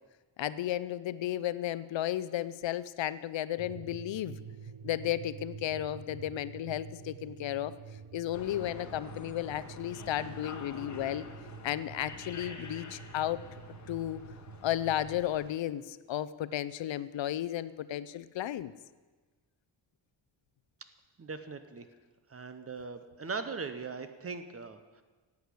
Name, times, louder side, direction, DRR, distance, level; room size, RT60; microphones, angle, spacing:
voice 1, 0.4-4.4 4.8-7.7 8.1-11.3 11.6-13.4 13.9-14.2 14.6-18.7, left 12 dB, 70° left, 15 dB, 0.6 m, -34 dB
sound 1, 3.6-15.2, right 6 dB, 70° right, 0.9 m, -48 dB
sound 2, 8.3-15.5, left 4 dB, 35° left, 1.2 m, -48 dB
voice 2, 21.2-21.9 22.3-25.0, right 4 dB, 30° right, 10 dB, 0.8 m, -40 dB
11.0 x 8.3 x 8.3 m, 1.3 s
wide cardioid pair, 150°, 46 cm